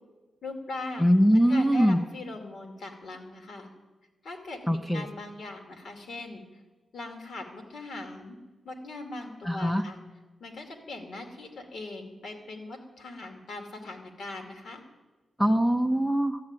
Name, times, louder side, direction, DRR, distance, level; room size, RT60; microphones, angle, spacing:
voice 1, 0.4-1.1 1.5-3.7 4.2-6.4 6.9-8.4 8.6-10.0 10.4-14.8, left 2 dB, 65° left, 4 dB, 2.4 m, -40 dB
voice 2, 1.0-2.0 4.7-5.0 9.5-9.8 15.4-16.4, equal, 5° left, 7 dB, 0.6 m, -22 dB
13.0 x 9.4 x 8.8 m, 1.2 s
wide cardioid pair, 140°, 0 cm